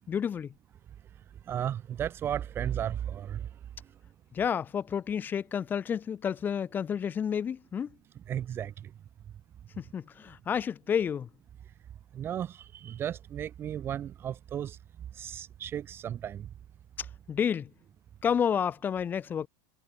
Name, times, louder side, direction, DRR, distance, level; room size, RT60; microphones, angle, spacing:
voice 1, 0.1-0.5 4.3-7.9 9.8-11.3 17.0-17.7 18.2-19.5, left 8 dB, 15° left, 2.4 m, -30 dB
voice 2, 1.5-3.4 8.3-8.7 12.1-14.8 15.2-16.4, right 10 dB, 20° right, 1.5 m, -34 dB
supercardioid pair, 165°, 11 cm